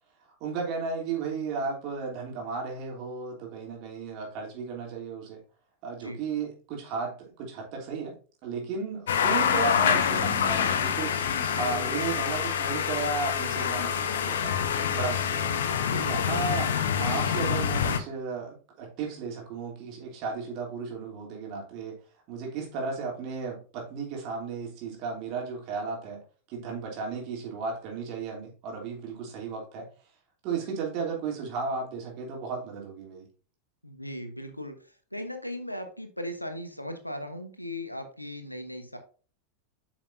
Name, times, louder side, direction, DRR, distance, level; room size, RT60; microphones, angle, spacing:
voice 1, 0.4-5.4 5.8-8.1 8.4-14.6 14.9-15.5 15.9-16.7 17.0-22.0 22.3-26.2 26.5-29.9 30.4-33.3, right 4 dB, 40° right, -1 dB, 3.0 m, -34 dB
sound 1, 9.1-18.0, left 7 dB, 60° left, 0.7 m, -26 dB
voice 2, 33.8-39.0, left 1 dB, 90° left, 7 dB, 1.1 m, -38 dB
8.7 x 6.0 x 2.7 m, 0.38 s
figure-of-eight pair, 90°, 0 cm